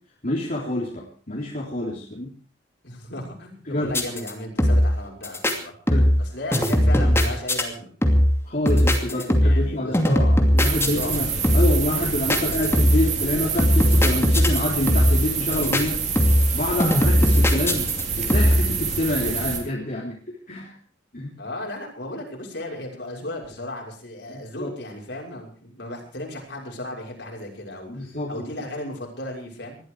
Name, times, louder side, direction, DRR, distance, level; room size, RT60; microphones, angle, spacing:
voice 1, 0.2-2.3 3.7-4.1 5.9-6.1 8.5-10.0 10.5-16.0 16.5-17.9 18.2-20.7 21.1-21.3 24.3-24.7 27.9-28.3, left 1 dB, 45° left, -4 dB, 3.7 m, -27 dB
voice 2, 2.8-5.7 6.2-7.9 9.1-11.5 21.4-29.8, left 1 dB, 60° left, 0 dB, 6.2 m, -35 dB
sound 1, 3.9-4.3 4.6-5.0 5.2-5.5 5.9-6.3 6.5-7.6 8.0-8.4 8.7-9.7 9.9-11.2 11.4-11.8 12.3-13.1 13.6-14.6 14.9-15.3 15.5-15.8 16.2-16.5 16.8-18.0 18.3-18.7, equal, 15° left, 2.6 m, -18 dB
sound 2, 10.6-19.6, right 5 dB, 40° right, 3.9 m, -27 dB
20.5 x 14.0 x 4.9 m, 0.43 s
head